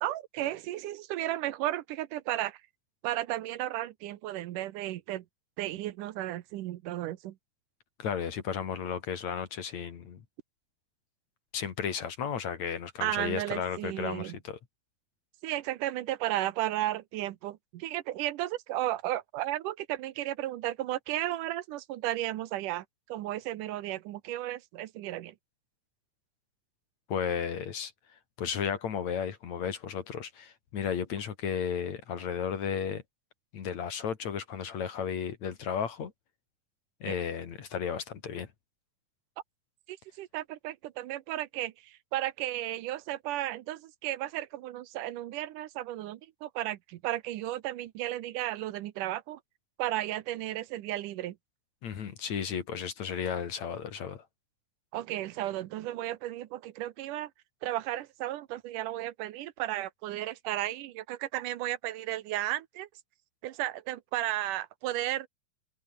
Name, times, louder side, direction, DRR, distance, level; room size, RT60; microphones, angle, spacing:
voice 1, 0.0-2.6 3.0-5.3 5.6-7.4 13.0-14.4 15.4-25.4 37.1-37.2 39.9-49.4 49.8-51.4 54.9-57.3 57.6-62.9 63.4-65.3, right 14 dB, 80° right, 2.5 m, -34 dB
voice 2, 8.0-10.2 11.5-14.6 27.1-27.9 28.4-33.0 33.5-36.1 37.0-38.5 51.8-54.2, left 7 dB, 60° left, 3.3 m, -34 dB
omnidirectional pair, 3.8 m